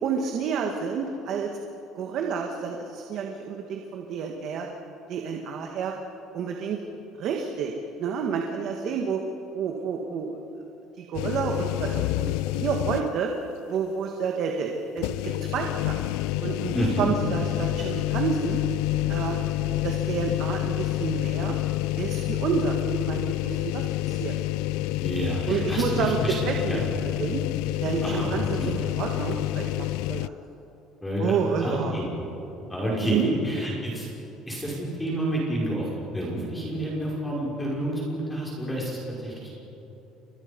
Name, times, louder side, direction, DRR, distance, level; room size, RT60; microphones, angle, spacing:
voice 1, 0.0-1.5 1.9-4.7 5.1-5.9 6.3-6.8 7.2-7.7 8.0-9.2 9.5-10.7 11.0-13.3 13.7-16.0 16.4-18.6 19.1-19.4 19.8-21.6 22.0-22.8 23.1-24.4 25.5-26.2 26.4-26.8 27.2-27.4 27.8-30.3 31.2-31.9 33.0-33.3, right 6 dB, 50° right, 2 dB, 1.8 m, -29 dB
sound 1, 11.1-13.3 13.7-13.8 15.0-30.3, left 17 dB, 90° left, 0.5 m, -28 dB
voice 2, 16.7-17.2 25.0-26.4 26.7-26.8 28.0-28.3 28.6-28.7 31.0-32.1 32.7-34.1 34.5-39.6, right 1 dB, 10° left, -4 dB, 5.7 m, -29 dB
29.5 x 24.0 x 5.4 m, 2.9 s
cardioid pair, 155°, 0 cm